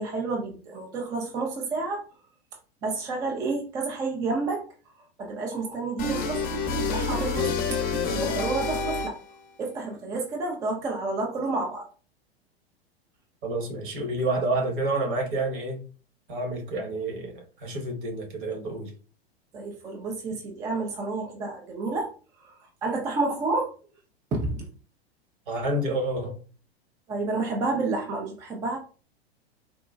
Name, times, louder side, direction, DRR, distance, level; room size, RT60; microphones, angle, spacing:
voice 1, 0.0-2.0 2.8-4.7 5.2-6.4 6.8-7.5 7.8-9.2 9.6-11.9 19.5-22.1 22.4-22.5 22.8-23.7 24.3-24.6 27.1-28.8, right 3 dB, 10° right, 0.3 m, -30 dB
sound 1, 6.0-9.4, left 4 dB, 30° left, 0.6 m, -28 dB
voice 2, 13.4-15.8 16.3-18.9 25.5-26.4, right 2 dB, 55° right, 1.2 m, -29 dB
3.8 x 2.2 x 2.3 m
figure-of-eight pair, 95°, 32 cm